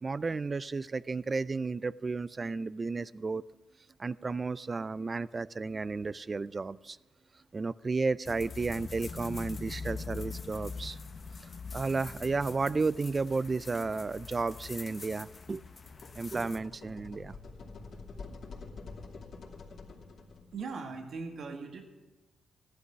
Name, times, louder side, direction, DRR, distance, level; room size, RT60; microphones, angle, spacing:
voice 1, 0.0-3.4 4.0-7.0 7.5-11.0 11.7-15.6 16.1-17.4, right 4 dB, 35° right, 18 dB, 0.4 m, -33 dB
sound 1, 8.3-16.6, left 4 dB, 40° left, 1.1 m, -43 dB
sound 2, 15.8-20.7, left 4 dB, 65° left, 2.7 m, -47 dB
voice 2, 20.5-21.8, right 4 dB, 65° right, 4 dB, 1.8 m, -39 dB
15.0 x 11.5 x 6.3 m, 1.2 s
cardioid pair, 85°, 0 cm